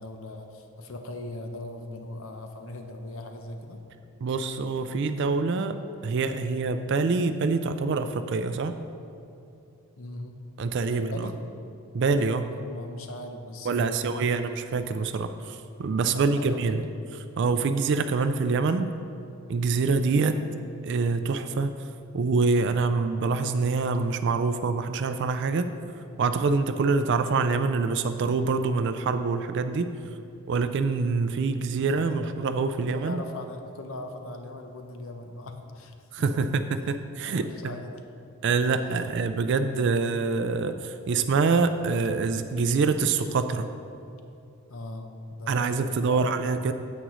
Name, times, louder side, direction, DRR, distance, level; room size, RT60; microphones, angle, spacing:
voice 1, 0.0-3.8 10.0-10.4 10.8-11.4 12.5-14.4 16.1-16.8 30.0-30.2 31.8-32.1 32.8-35.9 36.4-36.5 37.2-38.0 44.7-46.3, left 2 dB, 65° left, 5 dB, 0.8 m, -39 dB
voice 2, 4.2-5.8 6.0-8.8 10.6-11.3 11.9-12.5 13.6-16.8 17.4-18.9 19.5-20.4 20.8-21.7 22.1-25.7 25.9-29.9 30.5-33.2 36.1-37.8 38.4-43.7 45.5-46.7, right 4 dB, 55° right, 9 dB, 0.3 m, -25 dB
9.9 x 8.1 x 3.1 m, 2.7 s
head